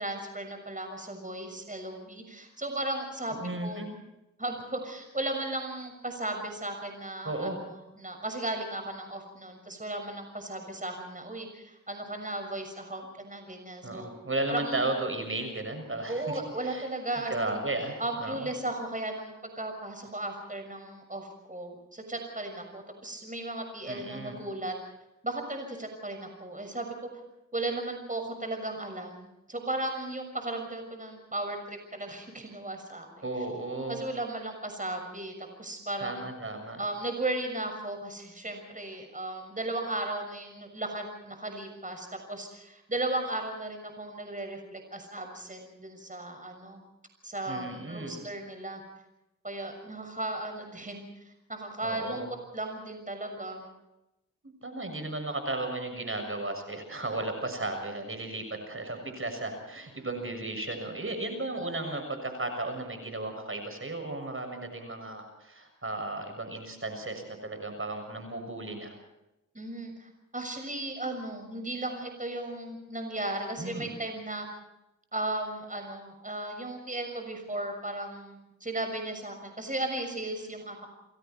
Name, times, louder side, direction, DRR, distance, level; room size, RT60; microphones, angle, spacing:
voice 1, 0.0-3.9 4.4-7.5 8.0-14.1 14.5-14.8 16.1-17.6 18.0-24.7 25.2-27.0 27.5-33.2 33.9-36.2 36.8-46.8 47.2-48.8 49.4-52.2 52.5-53.7 69.5-74.5 75.1-80.9, right 2 dB, 25° right, 5 dB, 6.5 m, -36 dB
voice 2, 3.4-3.9 7.2-7.6 13.8-16.9 17.3-18.5 23.9-24.4 33.2-34.0 36.0-36.8 47.5-48.1 51.8-52.3 54.4-69.0 73.6-73.9, right 2 dB, 45° right, 6 dB, 7.0 m, -35 dB
30.0 x 22.5 x 4.6 m, 0.91 s
cardioid pair, 50°, 31 cm